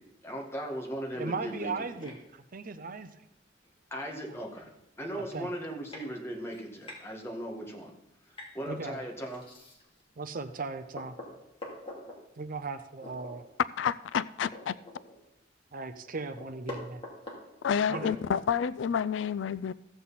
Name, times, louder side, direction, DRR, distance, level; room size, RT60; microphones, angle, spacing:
voice 1, 0.0-2.0 3.9-4.7 5.0-7.9 8.5-9.4 17.9-18.2, equal, 15° left, 1.8 m, -38 dB
voice 2, 1.1-3.1 5.1-5.5 8.7-9.0 10.2-11.1 12.4-13.4 15.7-17.0 17.9-18.1, right 4 dB, 50° right, 0.7 m, -37 dB
sound 1, 2.0-2.2 3.6-3.7 4.3-4.4 4.6-4.9 5.5-5.6 5.9-6.1 6.5-7.0 8.3-8.6 9.3-10.0 10.5-10.6 10.9-12.2 13.0-13.3 13.7-13.8 14.2-15.3 15.7-15.8 16.1-18.6, left 1 dB, 30° left, 2.8 m, -44 dB
voice 3, 13.8-14.8 17.6-19.7, left 7 dB, 80° left, 0.3 m, -29 dB
15.0 x 7.8 x 4.2 m
head